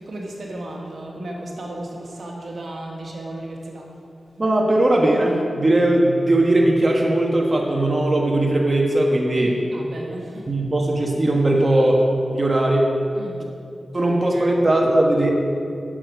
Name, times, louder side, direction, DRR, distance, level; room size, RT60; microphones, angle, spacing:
voice 1, 0.0-3.9 9.4-10.5 13.1-13.4 14.0-14.6, right 1 dB, 75° right, -1 dB, 1.6 m, -35 dB
voice 2, 4.4-9.6 10.5-12.1 12.3-12.9 13.9-15.3, right 1 dB, 35° right, 0 dB, 1.2 m, -19 dB
9.8 x 6.6 x 6.3 m, 2.6 s
wide cardioid pair, 75°, 0 cm